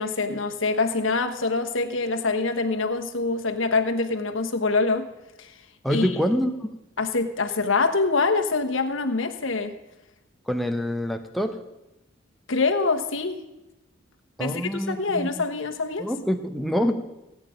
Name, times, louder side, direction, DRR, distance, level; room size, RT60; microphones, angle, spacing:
voice 1, 0.0-5.1 5.4-5.5 5.9-6.1 7.0-9.7 12.5-13.4 14.4-16.1, left 3 dB, 70° left, 5 dB, 1.2 m, -25 dB
voice 2, 5.8-6.5 10.5-11.6 14.4-15.4 16.0-16.9, equal, ahead, 5 dB, 0.8 m, -26 dB
16.5 x 9.2 x 5.1 m, 0.95 s
head